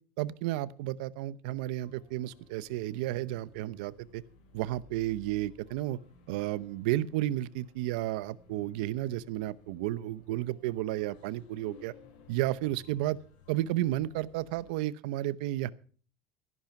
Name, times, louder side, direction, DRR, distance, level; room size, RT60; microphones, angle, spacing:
voice 1, 0.2-4.2 4.5-6.0 6.3-11.9 12.3-13.2 13.5-15.7, right 15 dB, 85° right, 17 dB, 0.7 m, -32 dB
sound 1, 1.8-14.7, left 5 dB, 80° left, 4.8 m, -58 dB
13.5 x 11.0 x 5.8 m, 0.43 s
cardioid pair, 145°, 5 cm